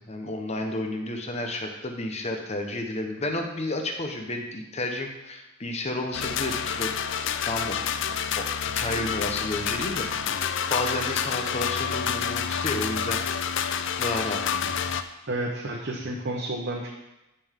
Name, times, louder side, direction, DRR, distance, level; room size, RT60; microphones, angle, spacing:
voice 1, 0.0-7.9 8.4-13.2 14.0-14.7, left 2 dB, 30° left, 3 dB, 1.0 m, -32 dB
sound 1, 6.1-15.0, left 7 dB, 60° left, 0.5 m, -28 dB
voice 2, 15.3-16.9, right 1 dB, 55° right, -1 dB, 1.0 m, -31 dB
13.0 x 5.5 x 3.8 m, 0.97 s
head